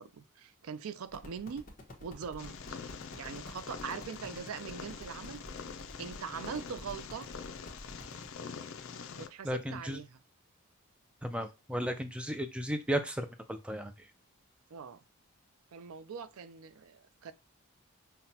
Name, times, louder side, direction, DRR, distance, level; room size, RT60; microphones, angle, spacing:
voice 1, 0.0-1.6 2.0-2.6 3.2-5.4 6.0-7.3 9.2-10.2 14.7-15.0 15.7-17.3, right 6 dB, 75° right, 0.4 m, -42 dB
sound 1, 1.1-8.3, left 1 dB, 40° left, 1.0 m, -51 dB
Purr, 2.4-9.3, left 6 dB, 65° left, 0.5 m, -45 dB
voice 2, 9.4-10.0 11.2-13.9, equal, 5° right, 0.3 m, -34 dB
5.8 x 2.2 x 2.7 m
head